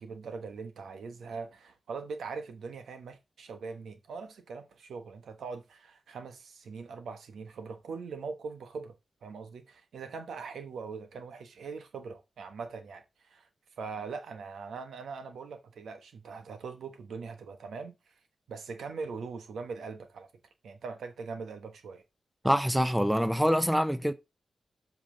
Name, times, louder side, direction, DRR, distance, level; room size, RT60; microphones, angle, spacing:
voice 1, 0.0-8.9 9.2-13.5 13.8-18.1 18.5-20.3 20.6-22.0, right 5 dB, 85° right, 1.2 m, -41 dB
voice 2, 22.4-24.1, equal, 5° right, 0.7 m, -25 dB
7.4 x 5.4 x 3.9 m
cardioid pair, 60°, 0 cm